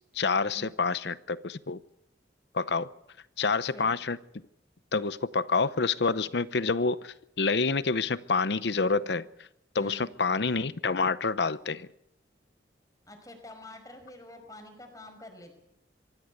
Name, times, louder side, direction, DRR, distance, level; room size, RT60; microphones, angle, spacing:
voice 1, 0.1-1.8 2.5-2.9 3.4-4.2 4.9-9.3 9.7-11.9, left 4 dB, 65° left, 15 dB, 0.8 m, -27 dB
voice 2, 3.4-3.9 6.2-6.3 9.8-10.0 13.1-15.6, left 1 dB, 20° left, 6 dB, 5.2 m, -47 dB
24.5 x 15.5 x 8.2 m, 0.79 s
head